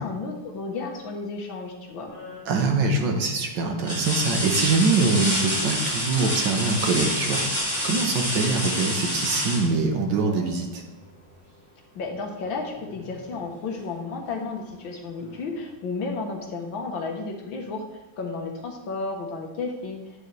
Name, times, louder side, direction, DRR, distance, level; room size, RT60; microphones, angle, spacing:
voice 1, 0.0-2.1 12.0-20.0, left 3 dB, 70° left, 2 dB, 2.0 m, -33 dB
sound 1, 2.1-2.6 3.1-3.2 3.8-10.5 12.3-12.4 12.9-13.9 15.2-15.3, equal, 5° left, 3.4 m, -28 dB
voice 2, 2.5-10.8, right 3 dB, 65° right, 3 dB, 1.7 m, -24 dB
9.3 x 9.2 x 3.4 m, 1.1 s
omnidirectional pair, 2.2 m